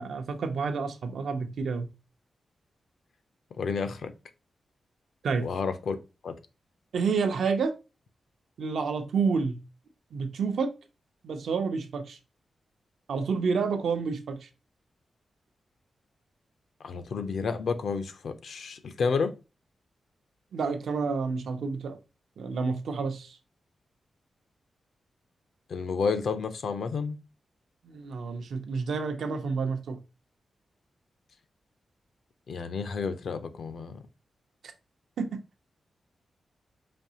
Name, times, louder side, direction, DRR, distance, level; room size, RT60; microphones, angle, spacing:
voice 1, 0.0-1.9 5.2-5.5 6.9-7.7 8.6-9.6 10.1-10.7 11.2-12.2 13.1-14.5 20.5-22.0 22.4-23.4 27.8-30.0 35.2-35.4, right 5 dB, 85° right, 0.6 m, -29 dB
voice 2, 3.6-4.1 5.4-6.0 6.2-6.3 16.8-19.3 25.7-27.2 32.5-34.0, left 5 dB, 70° left, 0.5 m, -30 dB
5.1 x 2.7 x 2.8 m
wide cardioid pair, 150°, 0 cm